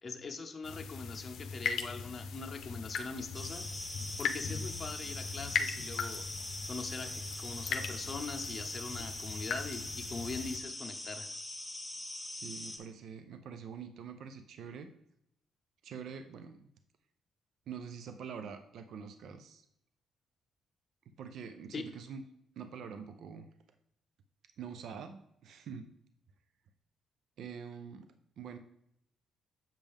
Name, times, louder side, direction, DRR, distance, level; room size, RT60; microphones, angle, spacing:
voice 1, 0.0-3.7 4.2-6.3 6.7-11.3 21.7-21.8, left 4 dB, 35° left, 3 dB, 0.6 m, -42 dB
sound 1, 0.6-10.6, left 6 dB, 75° left, 0.6 m, -39 dB
sound 2, 3.3-12.8, left 1 dB, ahead, 1.4 m, -42 dB
voice 2, 12.3-14.9 15.8-16.7 17.7-19.7 21.2-22.2 22.6-23.5 24.6-25.9 27.4-28.6, right 6 dB, 70° right, 9 dB, 0.5 m, -45 dB
7.4 x 5.2 x 3.5 m, 0.77 s
cardioid pair, 90°, 0 cm